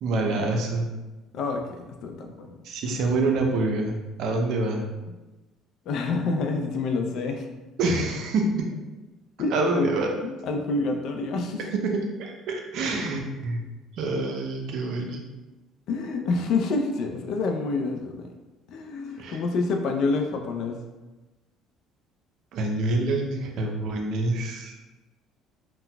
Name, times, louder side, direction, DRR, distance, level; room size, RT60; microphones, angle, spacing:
voice 1, 0.0-0.9 2.6-4.9 7.8-8.7 9.5-10.1 11.8-13.6 14.0-15.2 19.2-19.4 22.5-24.7, right 2 dB, 65° right, 2 dB, 0.5 m, -26 dB
voice 2, 1.3-2.5 2.9-3.0 5.9-7.4 9.4-9.9 10.2-11.6 15.9-18.3 18.7-20.8, left 3 dB, 65° left, 3 dB, 0.4 m, -27 dB
3.9 x 2.2 x 2.2 m, 1.1 s
supercardioid pair, 75°, 0 cm